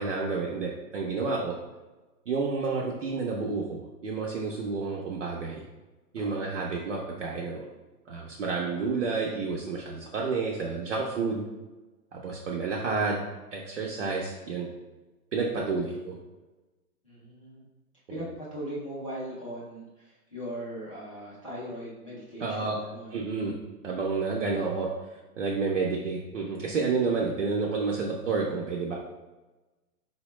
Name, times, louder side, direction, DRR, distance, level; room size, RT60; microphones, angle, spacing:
voice 1, 0.0-1.6 2.3-5.6 6.1-7.7 8.1-11.4 12.1-13.2 13.5-14.7 15.3-16.2 18.1-18.2 22.4-22.8 23.1-23.6 23.8-24.9 25.4-28.9, right 4 dB, 55° right, -3 dB, 0.5 m, -30 dB
voice 2, 17.0-17.6 18.1-23.2, equal, 25° left, -8 dB, 0.4 m, -39 dB
4.0 x 2.1 x 3.0 m, 1.1 s
hypercardioid pair, 170°, 47 cm